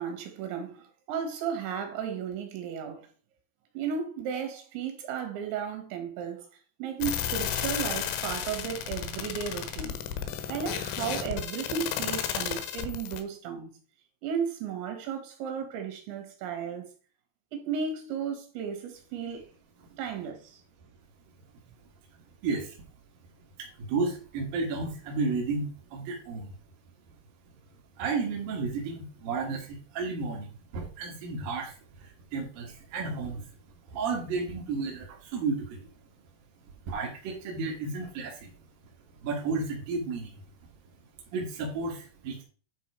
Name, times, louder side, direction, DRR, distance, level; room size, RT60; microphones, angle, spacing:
voice 1, 0.0-3.1 3.7-6.5 6.8-10.0 10.5-13.7 14.2-16.9 17.5-19.5 19.9-20.6, right 7 dB, 80° right, 3.9 m, -34 dB
sound 1, 7.0-13.2, left 9 dB, 75° left, 3.0 m, -33 dB
voice 2, 22.4-22.8 23.6-26.6 28.0-33.5 33.9-35.9 36.8-38.5 38.8-38.9 39.2-40.4 41.3-42.4, right 4 dB, 60° right, 2.9 m, -33 dB
10.5 x 3.8 x 4.7 m
omnidirectional pair, 5.4 m